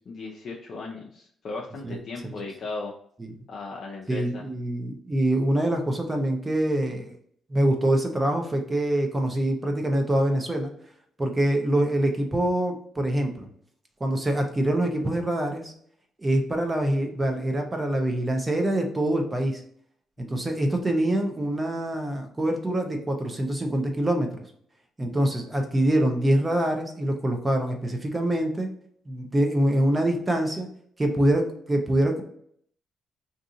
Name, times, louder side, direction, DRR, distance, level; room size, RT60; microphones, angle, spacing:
voice 1, 0.1-2.9 3.5-4.5 25.0-25.2, left 3 dB, 55° left, -1 dB, 0.5 m, -37 dB
voice 2, 4.1-7.2 7.5-10.7 11.2-13.5 14.0-15.7 16.2-19.6 20.3-24.3 25.0-28.7 29.1-30.7 31.0-32.2, right 1 dB, 20° right, 3 dB, 0.7 m, -25 dB
2.7 x 2.5 x 3.8 m, 0.64 s
cardioid pair, 90°, 0 cm